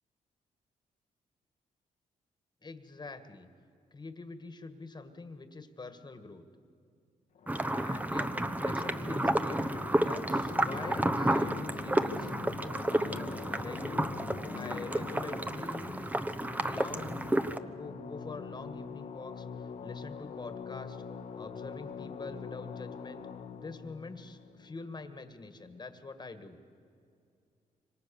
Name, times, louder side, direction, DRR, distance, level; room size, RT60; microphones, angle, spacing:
voice 1, 2.6-3.5 3.9-6.5 7.6-8.3 8.6-14.1 14.5-16.1 16.6-17.3 17.6-21.1 21.4-23.3 23.5-26.6, left 3 dB, 30° left, 10 dB, 1.8 m, -45 dB
sound 1, 7.3-25.5, left 6 dB, 70° left, 1.4 m, -44 dB
sound 2, 7.5-17.6, right 1 dB, 10° right, 1.0 m, -31 dB
27.0 x 24.5 x 7.1 m, 2.4 s
cardioid pair, 95°, 14 cm